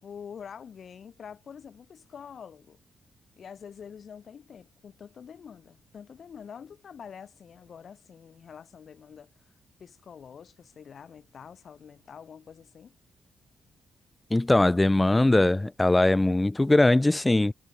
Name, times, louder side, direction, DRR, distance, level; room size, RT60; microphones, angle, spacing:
voice 1, 0.0-2.8 3.4-9.3 9.8-12.9, left 7 dB, 60° left, 4.2 m, -46 dB
voice 2, 14.3-17.5, left 2 dB, 15° left, 0.6 m, -21 dB
cardioid pair, 75°, 0 cm